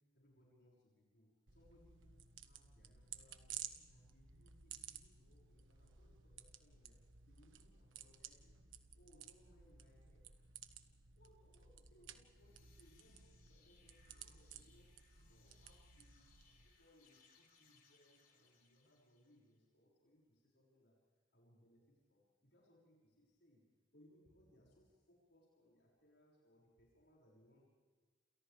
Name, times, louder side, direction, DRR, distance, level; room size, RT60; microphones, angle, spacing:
voice 1, 0.0-8.6 8.9-10.3 11.1-21.0 21.3-23.6 23.9-27.6, equal, 60° left, -4 dB, 6.5 m, -70 dB
sound 1, 1.5-16.7, right 9 dB, 85° right, 1.6 m, -56 dB
sound 2, 12.2-19.6, left 5 dB, 45° left, 4.8 m, -72 dB
29.0 x 29.0 x 3.5 m, 1.5 s
head